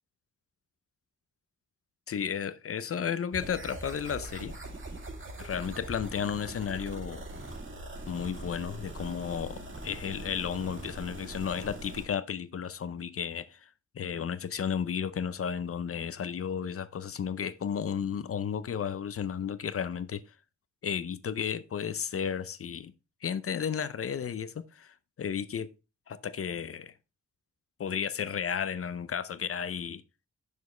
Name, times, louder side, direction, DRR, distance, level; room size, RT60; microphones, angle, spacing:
voice 1, 2.1-4.5 5.4-7.3 8.1-13.7 13.9-20.2 20.8-22.9 23.2-25.7 26.1-26.9 27.8-30.0, left 7 dB, 45° left, 0.5 m, -33 dB
sound 1, 3.3-12.0, right 2 dB, 40° right, 2.5 m, -42 dB
7.0 x 6.4 x 3.1 m
wide cardioid pair, 130°, 31 cm